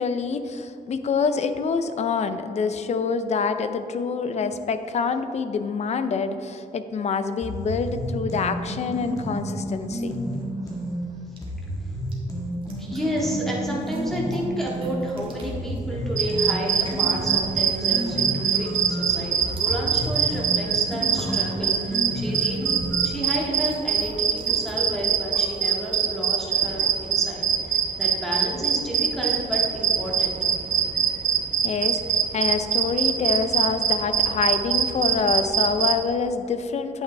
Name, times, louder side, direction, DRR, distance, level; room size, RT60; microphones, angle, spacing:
voice 1, 0.0-10.1 31.6-37.0, left 5 dB, 45° left, 10 dB, 0.5 m, -26 dB
sound 1, 7.4-11.0 11.4-15.0 15.4-23.2, equal, 20° left, 1.7 m, -31 dB
sound 2, 10.1-27.1, right 1 dB, 35° right, 1.8 m, -44 dB
voice 2, 12.8-30.4, equal, ahead, -4 dB, 1.8 m, -31 dB
sound 3, 16.2-35.9, right 8 dB, 55° right, 0.8 m, -23 dB
10.0 x 8.5 x 3.4 m, 2.7 s
wide cardioid pair, 155°, 15 cm